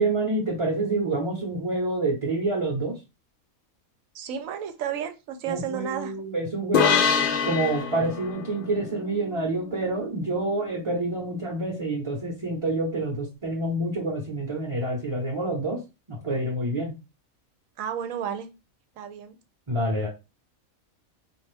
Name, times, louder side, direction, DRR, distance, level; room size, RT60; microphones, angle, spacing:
voice 1, 0.0-2.9 5.4-15.8 16.1-16.9 19.7-20.1, right 2 dB, 25° right, -2 dB, 0.9 m, -27 dB
voice 2, 4.1-6.1 17.8-18.5 19.0-19.4, right 8 dB, 70° right, 9 dB, 1.0 m, -32 dB
sound 1, 6.7-10.2, left 6 dB, 60° left, 0.6 m, -26 dB
4.1 x 2.6 x 3.3 m, 0.27 s
omnidirectional pair, 1.5 m